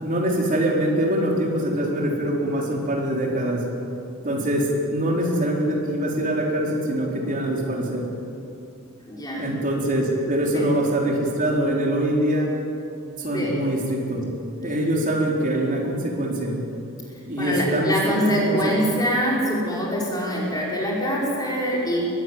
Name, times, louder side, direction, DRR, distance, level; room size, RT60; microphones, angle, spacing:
voice 1, 0.0-3.6 4.2-8.0 9.4-12.5 13.2-14.2 14.6-16.5 17.3-18.2 18.5-18.7, right 1 dB, 40° right, -1 dB, 4.4 m, -23 dB
voice 2, 9.1-9.4 10.5-10.7 13.3-13.6 17.4-22.1, equal, 20° left, -4 dB, 5.5 m, -24 dB
23.0 x 15.5 x 9.4 m, 2.6 s
head